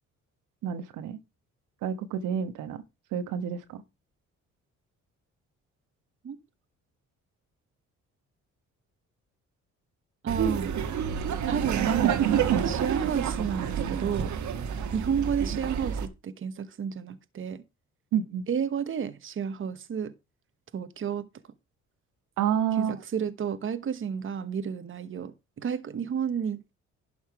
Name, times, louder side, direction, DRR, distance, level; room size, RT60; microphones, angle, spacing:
voice 1, 0.6-1.2 1.8-2.8 3.1-3.8 12.5-12.6 18.1-18.4 22.4-22.9, right 8 dB, 85° right, 1.2 m, -29 dB
voice 2, 10.2-10.7 11.5-12.3 12.7-14.3 14.9-17.6 18.5-20.1 20.7-21.3 22.8-26.7, right 7 dB, 45° right, 1.0 m, -31 dB
Laughter, 10.3-16.1, right 8 dB, 70° right, 1.5 m, -28 dB
11.5 x 5.5 x 4.7 m
cardioid pair, 90°, 30 cm